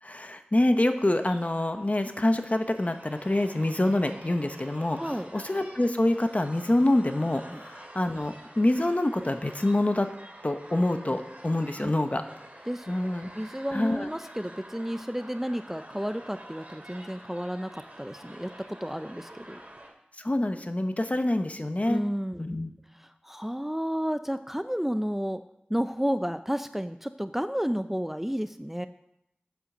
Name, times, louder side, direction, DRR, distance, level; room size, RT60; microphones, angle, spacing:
voice 1, 0.0-10.1 10.4-12.2 12.9-13.3 13.7-14.1 20.2-22.0 22.4-22.7, left 1 dB, 40° left, 7 dB, 0.9 m, -26 dB
sound 1, 0.9-19.9, right 1 dB, 45° right, 2.5 m, -48 dB
voice 2, 5.0-5.3 11.8-11.9 12.7-19.6 21.8-22.4 23.2-25.4 25.7-28.9, equal, 10° right, 10 dB, 0.5 m, -31 dB
8.1 x 7.6 x 6.6 m, 0.80 s
wide cardioid pair, 40°, 4 cm